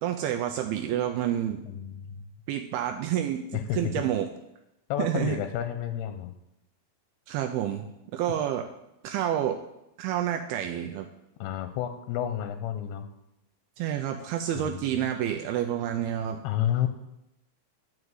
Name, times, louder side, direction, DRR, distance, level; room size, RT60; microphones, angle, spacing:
voice 1, 0.0-1.6 2.5-4.3 5.0-5.4 7.3-8.7 9.0-9.6 10.0-11.1 13.8-16.4, right 10 dB, 80° right, 4 dB, 2.5 m, -29 dB
voice 2, 1.6-2.2 3.5-4.0 4.9-6.3 11.4-13.1 14.5-14.8 16.4-16.9, left 11 dB, 85° left, 9 dB, 2.6 m, -30 dB
11.0 x 5.0 x 8.1 m, 0.86 s
omnidirectional pair, 4.6 m